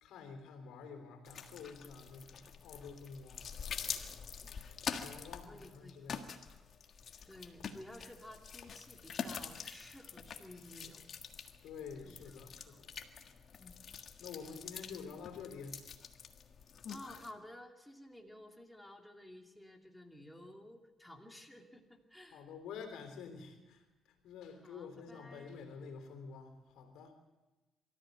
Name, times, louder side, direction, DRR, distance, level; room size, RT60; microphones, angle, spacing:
voice 1, 0.0-3.4 5.0-6.5 11.6-12.9 14.2-15.8 22.3-23.8 24.2-27.1, left 5 dB, 90° left, 6 dB, 3.4 m, -49 dB
sound 1, 1.2-17.3, left 6 dB, 55° left, 1.6 m, -46 dB
voice 2, 5.4-6.1 7.3-11.0 12.0-12.8 13.6-13.7 16.9-22.5 24.6-25.6, left 1 dB, 5° left, 2 dB, 2.6 m, -54 dB
24.0 x 14.0 x 8.0 m, 1.1 s
cardioid pair, 90°, 0 cm